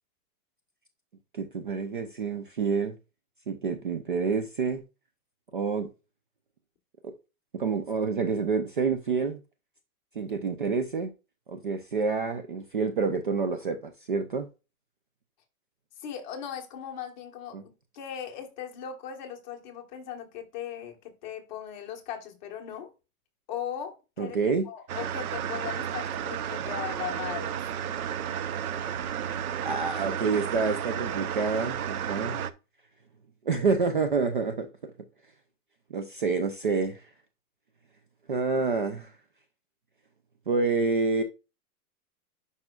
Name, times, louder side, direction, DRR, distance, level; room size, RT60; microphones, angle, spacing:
voice 1, 1.3-3.0 3.5-4.8 5.5-5.9 7.0-7.1 7.5-9.4 10.2-11.1 11.5-14.5 17.5-17.6 24.2-24.7 29.2-32.5 33.4-34.9 35.9-37.1 38.3-39.1 40.5-41.2, right 4 dB, 35° right, 0.4 m, -28 dB
voice 2, 16.0-22.9 23.5-24.4 24.6-27.6, left 9 dB, 30° left, 1.4 m, -38 dB
sound 1, 24.9-32.5, right 9 dB, 70° right, 0.9 m, -32 dB
10.5 x 5.5 x 2.3 m
hypercardioid pair, 175°, 45 cm